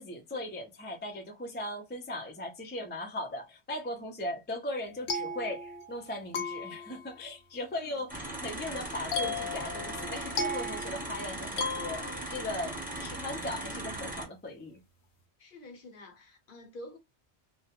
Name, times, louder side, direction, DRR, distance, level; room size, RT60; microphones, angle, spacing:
voice 1, 0.0-14.8, left 1 dB, 15° left, 0.4 m, -38 dB
sound 1, 4.8-6.1 6.3-7.2 9.1-12.5, left 3 dB, 85° left, 0.9 m, -36 dB
voice 2, 7.8-8.1 15.4-17.0, left 1 dB, 55° left, 0.9 m, -48 dB
sound 2, 8.1-14.2, right 1 dB, 10° right, 0.8 m, -38 dB
2.4 x 2.1 x 2.8 m
omnidirectional pair, 1.1 m